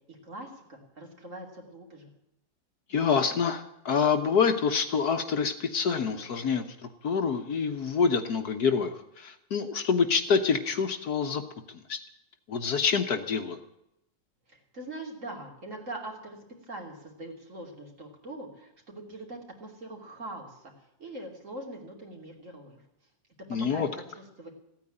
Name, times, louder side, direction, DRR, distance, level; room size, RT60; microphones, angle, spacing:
voice 1, 0.1-2.1 14.5-16.4 16.7-20.7 21.0-22.8 23.5-24.5, right 2 dB, 45° right, 0 dB, 3.2 m, -42 dB
voice 2, 2.9-11.4 11.7-12.0 12.5-13.6 23.5-23.9, left 6 dB, 60° left, 7 dB, 1.4 m, -27 dB
15.0 x 9.1 x 9.7 m, 0.82 s
omnidirectional pair, 2.0 m